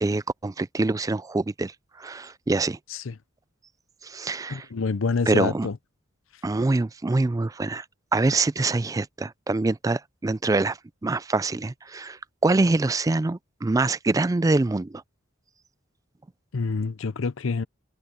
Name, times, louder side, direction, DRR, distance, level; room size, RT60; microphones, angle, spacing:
voice 1, 0.0-1.7 2.0-2.8 4.0-4.7 5.3-5.7 6.4-7.8 8.1-15.0, right 3 dB, 15° right, 0.3 m, -25 dB
voice 2, 4.5-5.8 16.5-17.6, left 4 dB, 75° left, 0.6 m, -27 dB
head